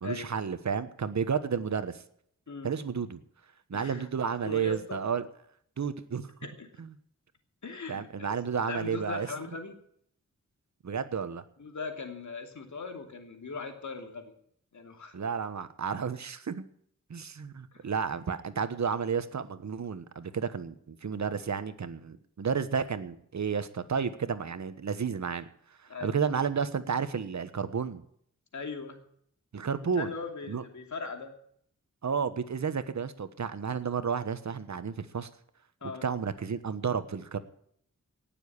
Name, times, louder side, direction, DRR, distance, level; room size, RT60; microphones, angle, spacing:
voice 1, 0.0-2.0 2.6-3.2 3.7-5.2 5.8-6.3 6.8-6.9 7.9-9.3 10.8-11.4 15.1-16.6 17.1-25.5 26.0-28.0 29.5-30.1 30.5-30.6 32.0-35.3 36.0-37.4, right 6 dB, 65° right, 11 dB, 1.3 m, -32 dB
voice 2, 3.7-4.1 4.4-5.0 6.4-6.7 7.6-8.4 8.7-9.8 11.6-14.3 14.7-15.2 17.7-17.9 25.9-26.2 28.5-29.0 29.8-31.3 35.8-36.1, left 4 dB, 65° left, 4 dB, 2.8 m, -39 dB
18.5 x 7.2 x 8.7 m, 0.66 s
wide cardioid pair, 80°, 31 cm